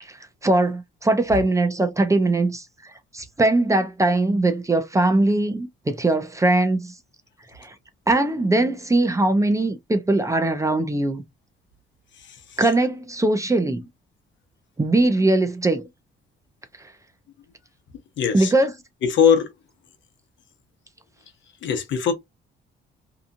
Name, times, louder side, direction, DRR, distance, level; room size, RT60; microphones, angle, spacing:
voice 1, 0.0-2.6 3.1-6.9 7.6-7.7 8.1-11.2 12.6-13.9 14.8-15.9 18.3-18.7, right 2 dB, 15° right, 0.6 m, -21 dB
voice 2, 18.2-18.5 19.0-19.5 21.6-22.1, left 7 dB, 70° left, 0.9 m, -20 dB
2.8 x 2.4 x 2.5 m
cardioid pair, 90°, 20 cm